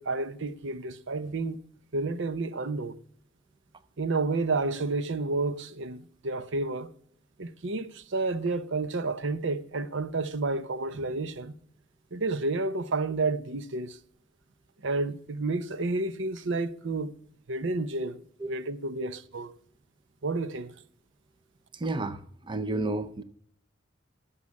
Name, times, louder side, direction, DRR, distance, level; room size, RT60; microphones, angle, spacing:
voice 1, 0.0-1.6 1.9-3.0 4.0-6.9 7.4-11.6 12.1-14.0 14.8-17.1 17.5-19.5 20.2-20.7, right 3 dB, 65° right, 0.8 m, -30 dB
voice 2, 21.7-23.2, right 2 dB, 25° right, 0.6 m, -32 dB
12.5 x 5.7 x 8.4 m
head